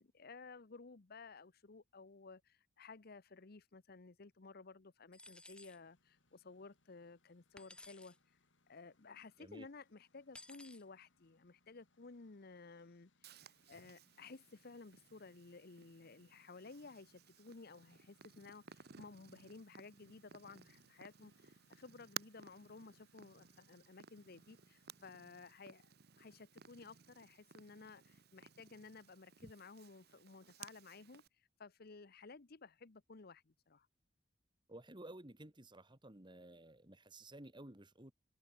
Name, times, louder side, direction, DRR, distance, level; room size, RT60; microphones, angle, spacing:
voice 1, 0.0-8.2 8.7-25.9 26.2-31.2 31.6-33.9, left 4 dB, 55° left, 0.9 m, -56 dB
sound 1, 5.1-5.8 7.6-8.2 10.3-10.8, left 2 dB, 5° left, 0.3 m, -57 dB
Engine, 5.7-25.1, left 3 dB, 90° left, 6.1 m, -78 dB
Purr, 13.2-31.3, right 8 dB, 60° right, 1.3 m, -57 dB
voice 2, 34.7-38.1, right 1 dB, 25° right, 2.7 m, -54 dB
head